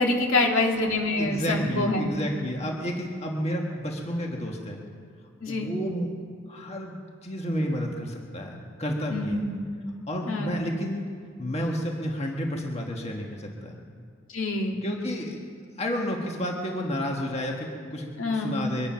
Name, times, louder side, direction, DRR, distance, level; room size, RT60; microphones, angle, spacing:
voice 1, 0.0-2.1 5.4-5.7 9.1-9.6 10.3-10.7 14.3-14.8 18.2-18.7, left 2 dB, 70° left, 1 dB, 2.1 m, -26 dB
voice 2, 1.2-4.8 5.5-6.1 6.5-6.9 7.2-9.4 10.1-11.0 11.4-13.8 14.8-15.4 15.8-18.9, equal, 30° left, 1 dB, 1.5 m, -31 dB
24.0 x 10.0 x 5.7 m, 2.1 s
head